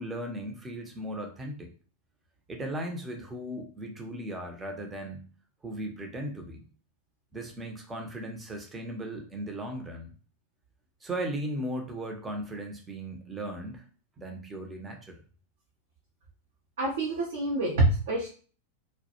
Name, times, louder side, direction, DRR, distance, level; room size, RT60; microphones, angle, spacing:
voice 1, 0.0-1.7 2.5-5.2 5.6-6.7 7.3-10.1 11.0-13.8 14.2-15.2, right 1 dB, 15° right, 3 dB, 0.6 m, -37 dB
voice 2, 16.8-18.3, right 2 dB, 60° right, -3 dB, 0.6 m, -26 dB
2.2 x 2.1 x 2.9 m, 0.40 s
figure-of-eight pair, 90°, 0 cm